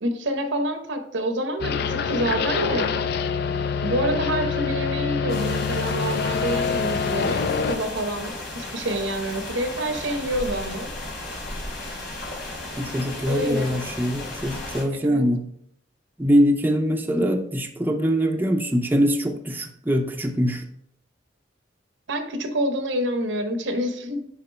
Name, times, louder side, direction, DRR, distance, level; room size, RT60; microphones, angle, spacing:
voice 1, 0.0-2.9 3.8-10.9 13.3-13.7 15.0-15.2 22.1-24.3, right 1 dB, 90° right, 6 dB, 0.9 m, -27 dB
sound 1, 1.6-7.8, left 5 dB, 60° left, 0.4 m, -25 dB
sound 2, 5.3-14.8, left 2 dB, 80° left, 2.7 m, -34 dB
voice 2, 12.8-15.4 16.2-20.6, equal, 10° right, 3 dB, 0.5 m, -23 dB
6.6 x 4.9 x 3.3 m, 0.69 s
head